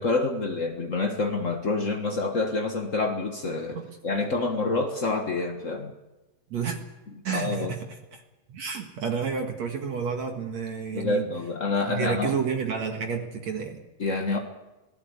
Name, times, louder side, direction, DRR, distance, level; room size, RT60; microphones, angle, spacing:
voice 1, 0.0-3.8 4.0-5.9 7.3-7.7 10.9-12.3 14.0-14.4, left 3 dB, 65° left, 3 dB, 0.7 m, -27 dB
voice 2, 7.2-8.2 8.5-11.3 11.9-13.8, right 6 dB, 55° right, 3 dB, 2.7 m, -30 dB
25.5 x 17.5 x 8.1 m, 1.1 s
omnidirectional pair, 4.0 m